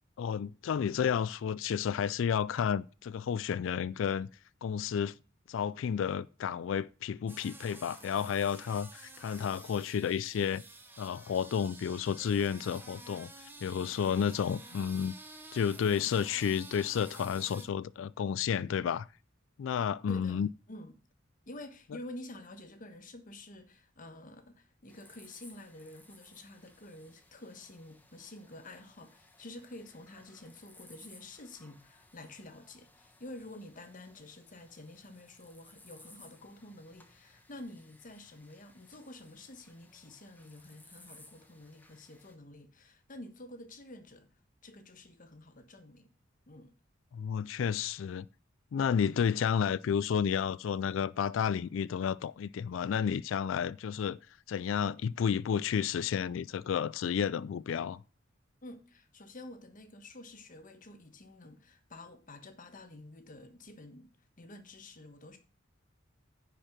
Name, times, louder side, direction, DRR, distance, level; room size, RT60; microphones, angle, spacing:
voice 1, 0.2-4.3 4.6-5.1 5.5-10.6 11.0-13.3 13.6-15.1 15.5-19.1 19.6-20.5 47.1-48.3 48.7-54.2 54.5-58.0, left 7 dB, 75° left, 0.3 m, -31 dB
sound 1, 7.3-17.7, right 2 dB, 10° right, 1.2 m, -50 dB
voice 2, 20.1-21.0 21.5-44.3 44.6-46.1 46.5-46.8 58.6-65.4, left 1 dB, 45° left, 1.3 m, -49 dB
sound 2, 24.9-42.4, left 2 dB, 10° left, 1.2 m, -60 dB
9.9 x 4.6 x 5.9 m
head